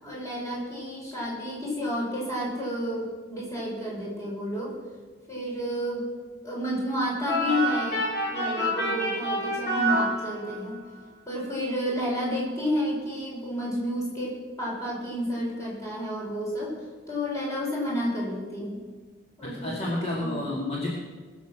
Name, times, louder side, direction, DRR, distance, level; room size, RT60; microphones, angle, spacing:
voice 1, 0.0-4.8 5.3-6.1 6.4-8.0 8.3-10.8 11.3-16.8 17.1-18.8 19.4-19.8 20.2-20.6, equal, 15° left, -5 dB, 4.9 m, -30 dB
sound 1, 7.3-10.8, equal, 60° left, 3.7 m, -28 dB
voice 2, 19.4-20.9, left 1 dB, 35° left, -5 dB, 2.3 m, -30 dB
21.5 x 7.3 x 6.1 m, 1.5 s
head